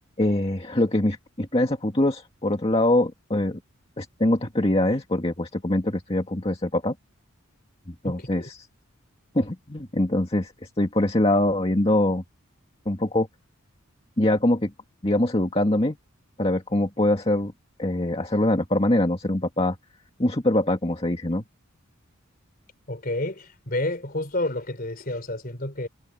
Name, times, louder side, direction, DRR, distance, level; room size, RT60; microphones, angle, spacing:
voice 1, 0.2-3.6 4.0-6.9 7.9-8.6 9.3-12.2 12.9-13.3 14.2-14.7 15.0-16.0 16.4-17.5 17.8-19.8 20.2-21.4, left 1 dB, 25° left, 2.0 m, -23 dB
voice 2, 8.0-8.5 22.9-25.9, left 1 dB, 45° left, 3.9 m, -30 dB
head